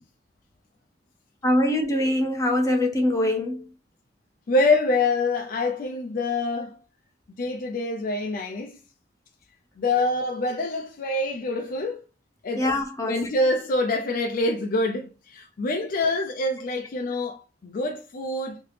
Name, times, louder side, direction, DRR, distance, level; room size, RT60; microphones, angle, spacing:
voice 1, 1.4-3.6 12.6-13.3, left 1 dB, 20° left, 0.7 m, -23 dB
voice 2, 4.5-6.8 7.4-8.8 9.8-12.0 12.4-12.7 13.0-18.6, left 2 dB, 50° left, 0.4 m, -26 dB
3.2 x 2.9 x 3.2 m
head